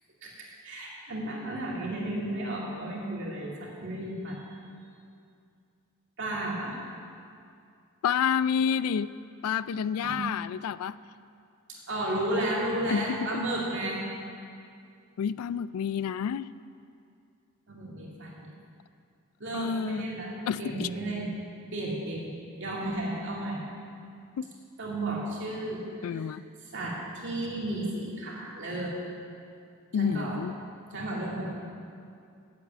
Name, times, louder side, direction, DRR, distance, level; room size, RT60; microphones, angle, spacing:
voice 1, 0.2-4.4 6.2-6.8 10.0-10.2 11.7-14.0 17.7-18.5 19.4-20.3 20.6-21.3 21.7-22.3 22.6-23.6 24.8-26.3 26.7-29.0 30.0-30.4 30.9-31.5, right 1 dB, 60° right, -4 dB, 2.5 m, -33 dB
voice 2, 8.0-9.1 9.4-11.0 12.9-13.4 15.2-16.5 19.5-20.1 20.5-20.9 24.4-24.5 26.0-26.4 29.9-30.5, left 7 dB, 85° left, 17 dB, 0.3 m, -29 dB
8.3 x 8.1 x 8.8 m, 2.4 s
head